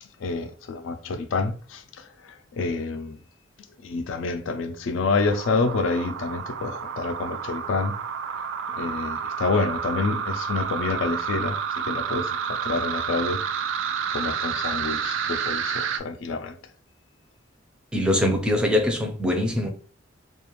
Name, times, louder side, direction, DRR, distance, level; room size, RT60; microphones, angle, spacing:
voice 1, 0.2-3.2 3.8-8.0 8.3-8.5 8.8-13.4 14.1-16.6, left 3 dB, 80° left, 0.4 m, -28 dB
sound 1, 5.1-16.0, right 7 dB, 75° right, 0.3 m, -30 dB
voice 2, 17.9-19.7, left 1 dB, 5° right, 0.4 m, -22 dB
2.4 x 2.3 x 3.0 m
head